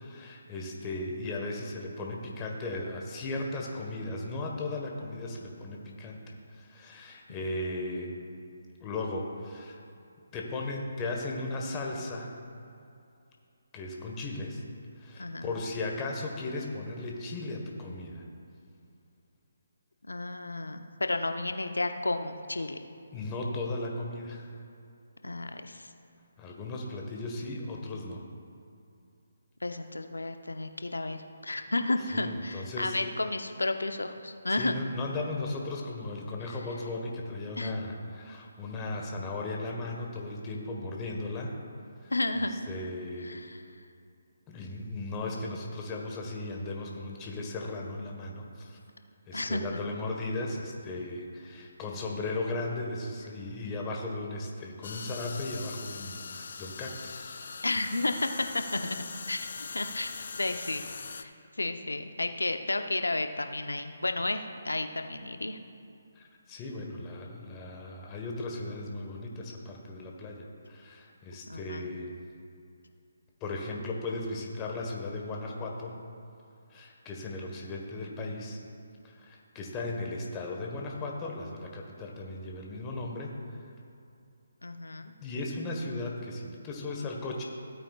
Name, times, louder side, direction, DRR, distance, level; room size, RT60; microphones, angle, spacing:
voice 1, 0.0-8.1 8.8-9.8 10.3-12.4 13.7-14.6 15.0-18.3 23.1-24.5 26.4-28.2 32.1-33.0 34.6-41.5 42.0-42.1 42.7-43.4 44.5-48.8 49.3-57.4 66.2-72.1 73.4-76.0 76.7-78.6 79.0-83.6 85.2-87.4, left 2 dB, 20° left, 0 dB, 1.4 m, -36 dB
voice 2, 15.2-15.5 20.1-22.8 25.2-25.9 29.6-34.7 37.6-37.8 42.1-42.6 43.2-43.7 49.3-49.6 57.6-60.8 61.2-61.3 61.6-65.6 71.5-71.9 84.6-85.1, left 2 dB, 90° left, 7 dB, 0.8 m, -32 dB
sound 1, 54.8-61.2, left 5 dB, 60° left, 0.5 m, -41 dB
16.5 x 8.7 x 2.4 m, 2.6 s
figure-of-eight pair, 150°, 0 cm